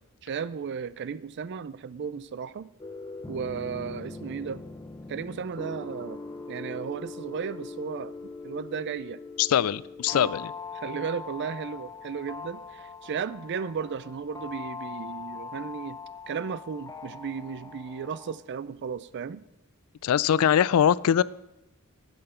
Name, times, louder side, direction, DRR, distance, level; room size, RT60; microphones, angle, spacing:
voice 1, 0.2-2.7 3.3-4.6 5.1-6.2 6.5-9.2 10.1-10.3 10.8-16.0 16.3-19.4, right 6 dB, 50° right, 17 dB, 0.4 m, -35 dB
sound 1, 2.8-18.4, left 4 dB, 15° left, 0.6 m, -41 dB
voice 2, 9.4-10.5 20.0-21.2, left 9 dB, 70° left, 20 dB, 0.3 m, -22 dB
8.7 x 7.9 x 5.5 m, 0.92 s
head